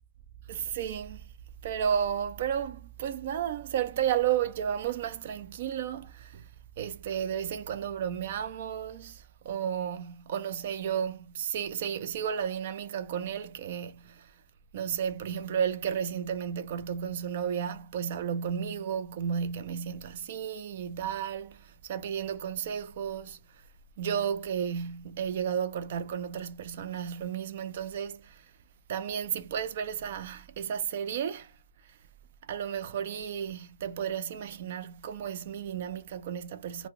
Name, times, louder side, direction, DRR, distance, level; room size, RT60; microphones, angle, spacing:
voice 1, 0.5-1.3 1.6-6.5 6.8-14.3 14.7-23.4 24.0-28.4 28.9-31.5 32.5-36.9, right 8 dB, 45° right, 0.4 m, -33 dB
2.5 x 2.0 x 3.5 m
hypercardioid pair, 150°, 0 cm